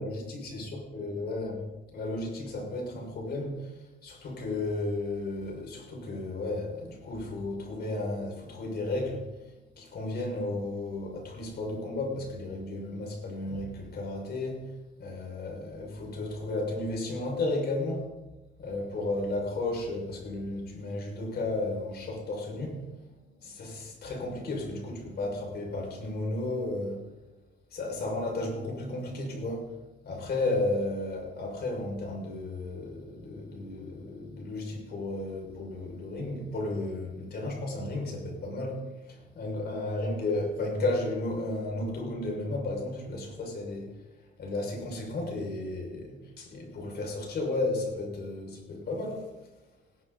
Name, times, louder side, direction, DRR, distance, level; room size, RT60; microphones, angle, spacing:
voice 1, 0.0-1.6 1.9-3.7 4.0-9.3 9.8-14.7 15.0-18.1 18.6-22.8 23.4-27.0 27.7-29.7 30.0-43.9 44.4-49.3, left 2 dB, 55° left, 5.9 m, -33 dB
20.0 x 17.5 x 4.1 m
cardioid pair, 110°, 20 cm